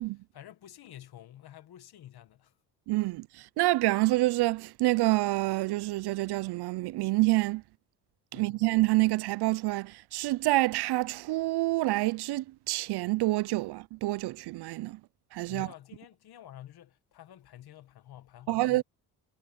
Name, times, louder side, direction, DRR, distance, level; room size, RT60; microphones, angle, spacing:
voice 1, 0.3-2.5 8.3-8.6 15.5-18.8, left 12 dB, 65° left, 1.5 m, -49 dB
voice 2, 2.9-7.6 8.3-15.0 15.3-15.7 18.5-18.8, right 19 dB, 75° right, 0.5 m, -27 dB
cardioid pair, 115°, 40 cm